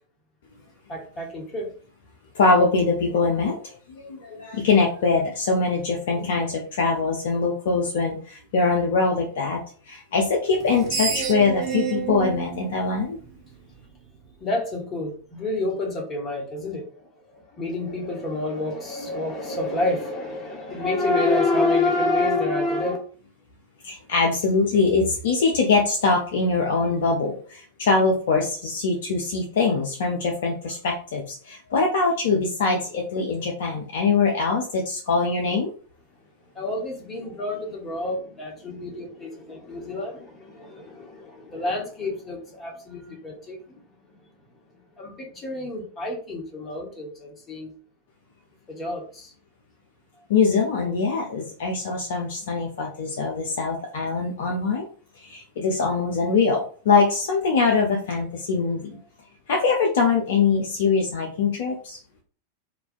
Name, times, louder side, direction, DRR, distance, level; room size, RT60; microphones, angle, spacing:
voice 1, 0.9-1.7 14.4-23.0 36.5-43.8 44.1-44.2 45.0-47.7 48.7-49.3, left 2 dB, 20° left, -1 dB, 0.9 m, -28 dB
voice 2, 2.3-3.7 4.0-9.6 9.9-13.2 23.8-35.7 50.3-54.9 55.2-59.0 59.5-62.0, left 4 dB, 55° left, 0 dB, 0.4 m, -23 dB
Screech, 10.6-13.8, right 7 dB, 35° right, 0.5 m, -29 dB
2.4 x 2.1 x 2.5 m, 0.42 s
figure-of-eight pair, 90°, 0 cm